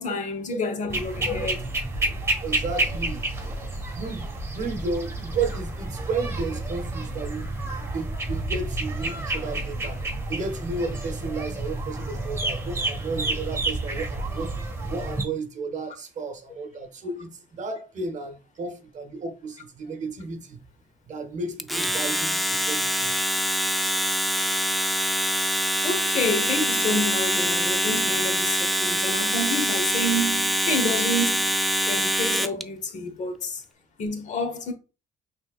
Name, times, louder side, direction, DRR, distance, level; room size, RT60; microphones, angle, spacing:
voice 1, 0.0-1.6 25.8-31.5 31.9-33.6 34.0-34.7, left 1 dB, 45° left, 1.1 m, -29 dB
sound 1, 0.9-15.2, right 2 dB, 15° right, 1.3 m, -30 dB
voice 2, 2.4-3.3 3.9-10.0 10.3-14.5 14.9-20.6 21.0-23.2 23.7-23.9, right 3 dB, 45° right, 0.8 m, -33 dB
Domestic sounds home sounds, 21.6-32.6, equal, ahead, 0.3 m, -24 dB
5.6 x 3.3 x 2.4 m
cardioid pair, 110°, 17 cm